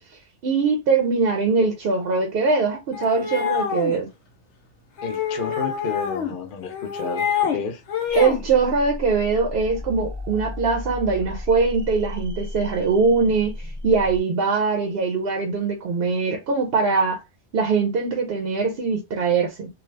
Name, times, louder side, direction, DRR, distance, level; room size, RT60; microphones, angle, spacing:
voice 1, 0.4-4.1 8.2-17.2 17.5-19.7, right 4 dB, 60° right, 0.8 m, -22 dB
sound 1, 2.9-4.0 5.0-6.3 6.7-7.6 7.9-8.4, left 7 dB, 85° left, 1.1 m, -26 dB
voice 2, 5.0-7.8, left 5 dB, 55° left, 0.7 m, -31 dB
sound 2, 8.1-14.2, left 1 dB, 30° right, 0.5 m, -34 dB
2.7 x 2.4 x 3.2 m
omnidirectional pair, 1.2 m